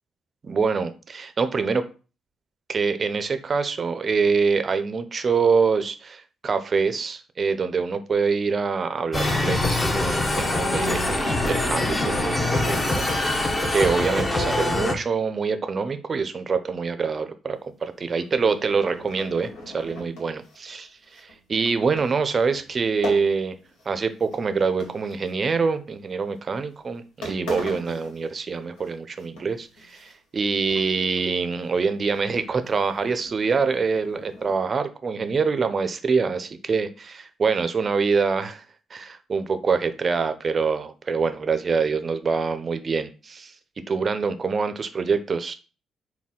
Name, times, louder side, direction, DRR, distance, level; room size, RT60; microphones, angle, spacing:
voice 1, 0.4-1.8 2.7-20.9 21.2-23.5 23.9-38.6 38.9-43.5 43.9-45.5, right 5 dB, 40° right, 0.5 m, -25 dB
sound 1, 9.1-14.9, left 2 dB, 25° left, 0.7 m, -24 dB
sound 2, 17.8-23.9 24.2-25.7 26.3-26.5 26.9-27.0 27.2-28.9 29.2-30.4 30.7-31.3 31.6-31.7 32.1-34.5, left 1 dB, 90° left, 1.4 m, -41 dB
4.1 x 2.2 x 3.7 m
cardioid pair, 90°, 0 cm